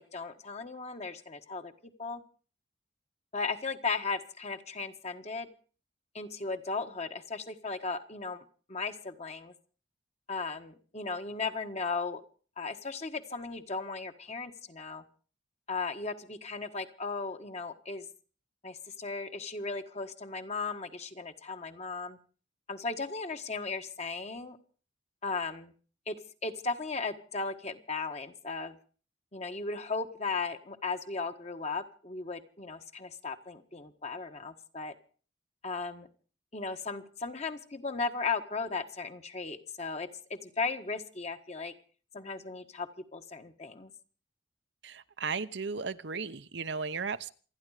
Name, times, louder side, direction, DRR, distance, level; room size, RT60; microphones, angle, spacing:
voice 1, 0.0-2.2 3.3-5.5 6.1-8.4 8.7-9.5 10.3-12.2 12.6-15.0 15.7-18.1 18.6-22.2 22.7-24.6 25.2-25.7 26.1-26.2 26.4-28.8 29.3-34.9 35.6-36.1 36.5-41.7 42.1-43.9, left 4 dB, 35° left, 7 dB, 1.5 m, -36 dB
voice 2, 44.8-47.3, right 5 dB, 65° right, 11 dB, 0.9 m, -35 dB
28.0 x 10.5 x 4.9 m, 0.41 s
head